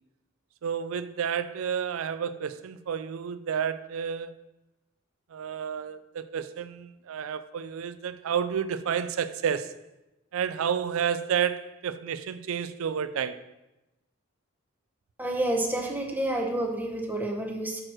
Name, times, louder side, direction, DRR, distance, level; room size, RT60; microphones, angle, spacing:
voice 1, 0.6-4.4 5.3-9.7 10.3-13.4, right 7 dB, 80° right, 0.4 m, -30 dB
voice 2, 15.2-17.8, right 1 dB, 10° right, 0.8 m, -29 dB
6.3 x 4.4 x 6.2 m
head